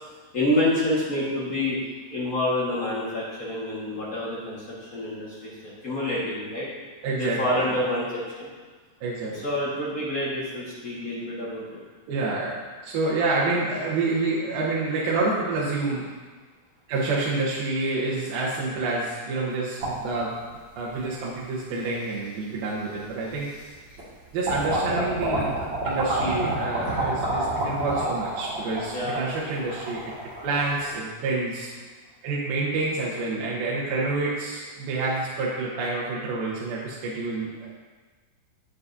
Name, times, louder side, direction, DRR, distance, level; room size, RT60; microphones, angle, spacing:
voice 1, 0.3-1.8 2.1-6.7 7.1-8.5 9.4-11.8 28.9-29.3, left 1 dB, 70° left, -8 dB, 0.8 m, -28 dB
voice 2, 5.9-6.2 7.0-7.8 9.0-9.5 12.1-16.1 16.9-23.6 24.3-25.6 25.8-30.2 30.4-31.7 32.2-37.7, right 3 dB, 80° right, -7 dB, 2.9 m, -28 dB
sound 1, 19.8-20.9 21.7-21.8 23.0-23.1 23.5-24.1 24.4-30.9, right 1 dB, 40° right, 2.1 m, -28 dB
9.5 x 8.6 x 2.6 m, 1.4 s
omnidirectional pair, 4.2 m